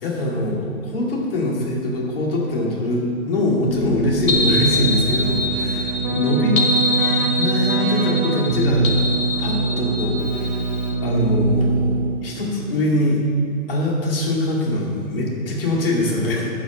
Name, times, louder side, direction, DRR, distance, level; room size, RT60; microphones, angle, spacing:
voice 1, 0.0-6.6 7.2-8.9 9.4-10.6 11.0-13.2 13.7-16.5, left 1 dB, 40° left, -2 dB, 2.3 m, -23 dB
Keyboard (musical), 3.6-12.4, right 4 dB, 20° right, 1.0 m, -23 dB
sound 1, 4.3-10.9, left 2 dB, 70° left, 1.4 m, -24 dB
11.5 x 5.1 x 7.5 m, 2.6 s
hypercardioid pair, 165°, 42 cm